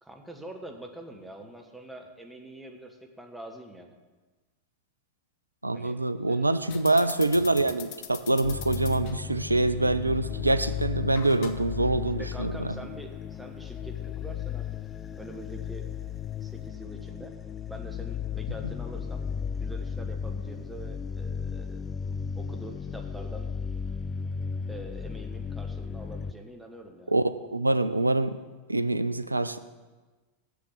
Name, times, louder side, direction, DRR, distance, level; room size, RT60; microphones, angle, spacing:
voice 1, 0.0-3.9 5.7-6.0 6.3-7.1 12.2-14.7 15.1-15.9 16.4-17.3 17.7-19.2 19.6-21.8 22.3-23.5 24.7-27.1, right 1 dB, 5° right, 3 dB, 1.1 m, -44 dB
voice 2, 5.6-12.7 27.1-27.2 27.5-28.4 28.7-29.6, right 2 dB, 85° right, 12 dB, 0.4 m, -25 dB
sound 1, 6.6-16.7, left 9 dB, 50° left, 0.7 m, -47 dB
sound 2, 8.4-26.3, left 7 dB, 20° left, 0.3 m, -35 dB
7.2 x 7.0 x 7.6 m, 1.3 s
figure-of-eight pair, 90°, 0 cm